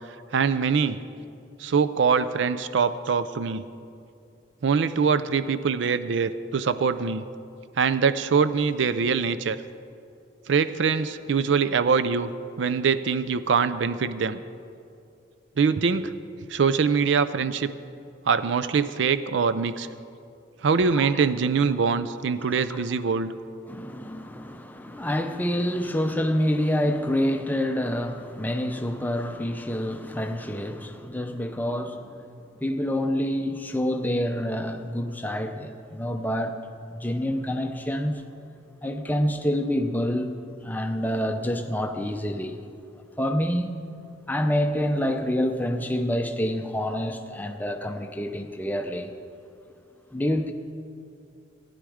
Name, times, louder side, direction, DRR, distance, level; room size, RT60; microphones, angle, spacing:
voice 1, 0.3-1.0 1.6-3.6 4.6-7.3 7.8-9.6 10.5-12.3 12.6-14.4 15.6-16.1 16.5-17.7 18.3-19.9 20.6-23.3, right 5 dB, 70° right, 13 dB, 0.4 m, -23 dB
voice 2, 23.7-32.2 32.6-36.6 36.9-38.2 38.8-40.3 40.6-42.6 43.2-43.8 44.3-49.1 50.1-50.5, equal, 10° left, 5 dB, 0.6 m, -27 dB
15.5 x 10.0 x 4.9 m, 2.5 s
head